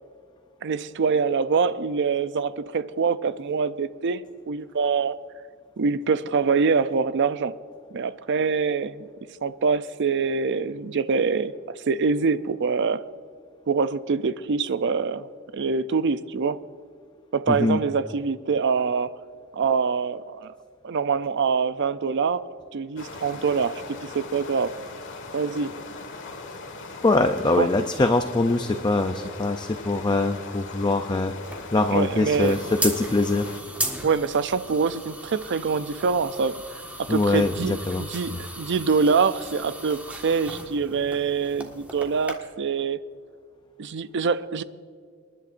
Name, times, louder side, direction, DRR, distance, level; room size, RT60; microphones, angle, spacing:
voice 1, 0.6-5.2 5.8-7.5 7.9-9.1 9.4-11.5 11.9-13.0 13.7-16.6 17.3-19.1 19.5-20.5 20.8-22.4 22.7-24.7 25.3-25.7 27.6-27.7 31.9-32.6 34.0-36.6 37.0-43.0 43.8-44.6, right 5 dB, 60° right, 14 dB, 0.5 m, -25 dB
voice 2, 17.5-17.8 27.0-31.3 31.7-33.5 37.1-38.0 38.3-38.4, left 2 dB, 20° left, 7 dB, 0.5 m, -23 dB
sound 1, 23.0-33.6, left 3 dB, 65° left, 1.6 m, -39 dB
sound 2, 31.4-42.3, right 1 dB, 5° right, 1.6 m, -36 dB
27.0 x 11.0 x 2.6 m, 2.1 s
head